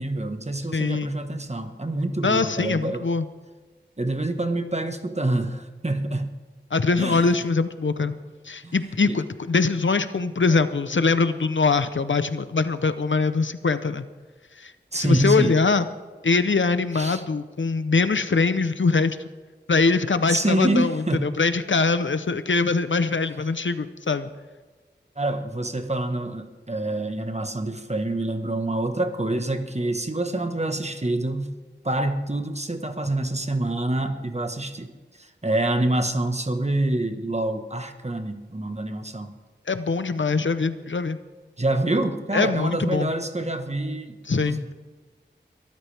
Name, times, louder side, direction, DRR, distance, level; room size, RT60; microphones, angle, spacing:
voice 1, 0.0-3.1 4.0-6.4 7.0-7.3 8.1-8.2 8.6-8.7 9.1-9.2 10.1-10.3 11.1-11.2 14.9-15.6 16.9-17.2 20.3-21.3 25.2-31.5 31.8-34.9 35.2-39.3 41.6-44.7, right 1 dB, 35° right, 6 dB, 1.4 m, -26 dB
voice 2, 0.7-1.2 2.2-3.3 6.7-8.1 8.5-14.0 14.6-15.8 16.2-19.2 19.7-24.3 39.7-41.2 42.3-43.1 44.3-44.7, left 4 dB, 85° left, 11 dB, 0.8 m, -23 dB
22.5 x 13.5 x 3.5 m, 1.3 s
wide cardioid pair, 50°, 19 cm